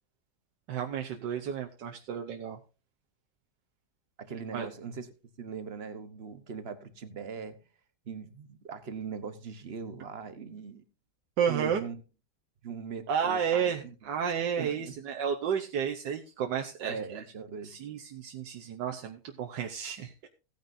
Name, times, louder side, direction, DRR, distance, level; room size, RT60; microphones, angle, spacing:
voice 1, 0.7-2.6 4.5-4.7 11.4-11.8 13.1-17.2 17.6-20.3, right 7 dB, 85° right, 3 dB, 1.5 m, -32 dB
voice 2, 4.2-5.1 5.4-7.5 8.1-10.8 11.5-12.0 12.6-13.9 14.6-14.9 16.9-17.7, right 6 dB, 40° right, 10 dB, 1.1 m, -40 dB
16.5 x 9.3 x 2.6 m, 0.32 s
omnidirectional pair, 1.9 m